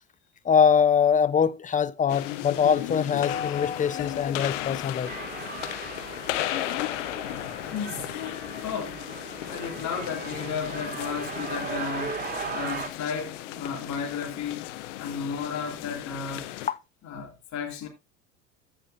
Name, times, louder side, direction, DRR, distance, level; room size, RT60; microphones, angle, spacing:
voice 1, 0.4-5.1, left 7 dB, 20° left, 0.7 m, -23 dB
sound 1, 2.1-16.7, left 15 dB, 65° left, 1.0 m, -35 dB
sound 2, 5.0-12.9, right 5 dB, 25° right, 2.8 m, -37 dB
voice 2, 7.6-8.1 8.5-9.0 9.5-12.2 12.5-14.7 15.0-16.4 17.0-17.9, left 6 dB, 45° left, 3.2 m, -33 dB
15.0 x 5.5 x 2.9 m
hypercardioid pair, 70°, 39 cm